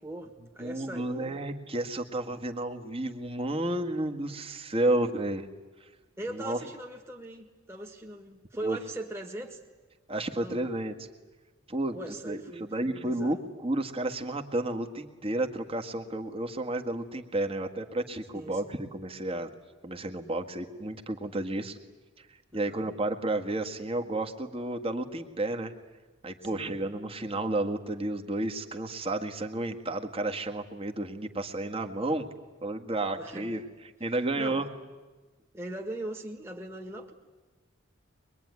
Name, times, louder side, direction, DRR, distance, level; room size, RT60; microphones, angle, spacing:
voice 1, 0.0-1.4 6.2-9.6 10.3-10.8 11.9-13.4 18.3-18.8 22.5-22.9 26.5-26.8 33.2-33.6 34.4-34.7 35.5-37.1, right 1 dB, 15° right, 0 dB, 1.8 m, -40 dB
voice 2, 0.6-5.5 5.8-5.9 6.3-6.6 8.6-8.8 10.1-10.9 11.7-12.0 12.3-19.5 19.8-21.8 22.3-25.7 26.2-32.3 32.6-33.6 34.0-34.7, right 1 dB, 30° right, 5 dB, 1.8 m, -31 dB
23.0 x 22.5 x 9.7 m, 1.3 s
head